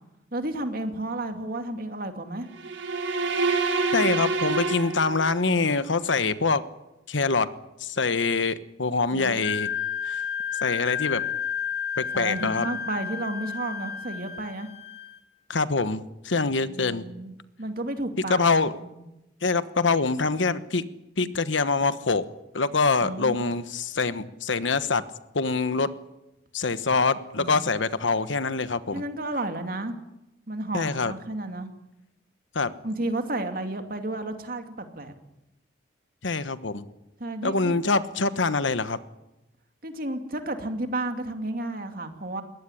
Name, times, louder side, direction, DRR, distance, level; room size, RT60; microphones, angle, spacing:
voice 1, 0.3-2.5 9.1-9.4 12.1-14.7 16.6-19.1 23.0-23.5 27.4-27.7 28.9-30.0 30.5-31.7 32.8-35.1 37.2-37.8 39.8-42.4, right 1 dB, 50° right, 6 dB, 2.4 m, -32 dB
sound 1, 2.5-5.6, right 3 dB, 85° right, 3.6 m, -27 dB
voice 2, 3.9-6.6 7.1-7.5 7.8-9.7 10.0-10.2 10.6-11.2 12.0-12.7 15.5-17.0 18.3-18.7 19.4-20.8 21.2-22.2 22.5-25.0 25.3-25.9 26.5-29.0 30.7-31.1 32.5-32.7 36.2-36.8 37.4-39.0, left 4 dB, 85° left, 13 dB, 1.2 m, -25 dB
Wind instrument woodwind instrument, 9.4-15.2, left 8 dB, 55° left, 3.1 m, -31 dB
22.0 x 18.0 x 9.9 m, 0.95 s
head